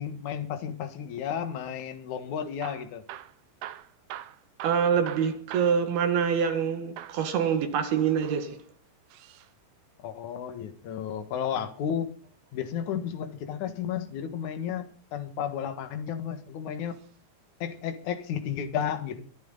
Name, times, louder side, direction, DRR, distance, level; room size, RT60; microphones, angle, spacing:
voice 1, 0.0-3.0 10.0-12.1 12.5-17.0 17.6-19.2, left 8 dB, 60° left, 2.2 m, -33 dB
Hammer / Drill, 2.5-6.7 7.0-7.3 8.1-9.5 11.3-12.5 14.2-14.7 15.4-16.2 16.9-17.2 17.5-17.6 18.2-18.3, right 12 dB, 80° right, 2.3 m, -45 dB
voice 2, 4.6-8.6, right 7 dB, 60° right, 3.3 m, -25 dB
25.0 x 9.5 x 4.0 m
omnidirectional pair, 5.6 m